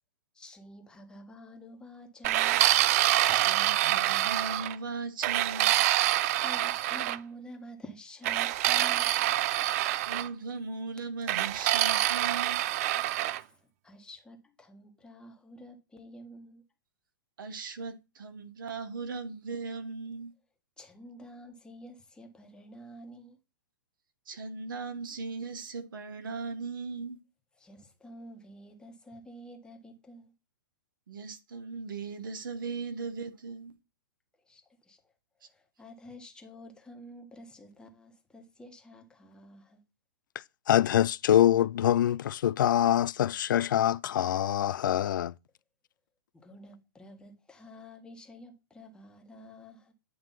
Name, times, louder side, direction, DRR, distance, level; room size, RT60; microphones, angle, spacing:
voice 1, 0.3-2.7 3.3-3.5 5.5-6.0 6.4-10.1 11.0-11.1 13.4-16.6 20.8-23.4 27.5-30.3 34.4-35.1 35.5-39.8 46.3-49.9, equal, 5° left, 1.4 m, -50 dB
sound 1, 2.2-4.8 5.2-7.2 8.2-10.3 11.3-13.4, right 14 dB, 45° right, 0.4 m, -26 dB
voice 2, 3.3-5.7 10.0-12.6 17.4-20.3 24.3-27.2 31.1-33.7, right 4 dB, 75° right, 1.5 m, -38 dB
voice 3, 40.7-45.3, left 11 dB, 70° left, 0.4 m, -24 dB
9.3 x 3.1 x 5.7 m
hypercardioid pair, 135°, 11 cm